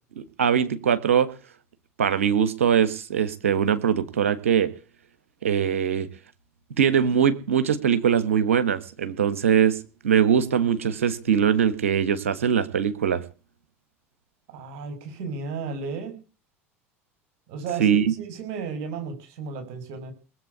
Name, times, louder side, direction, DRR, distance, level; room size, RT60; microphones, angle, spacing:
voice 1, 0.2-1.3 2.0-4.7 5.4-6.1 6.8-13.2 17.8-18.1, right 8 dB, 75° right, 12 dB, 1.5 m, -22 dB
voice 2, 14.5-16.1 17.5-20.1, right 5 dB, 60° right, 6 dB, 6.1 m, -34 dB
19.5 x 8.1 x 8.3 m, 0.37 s
figure-of-eight pair, 65°, 7 cm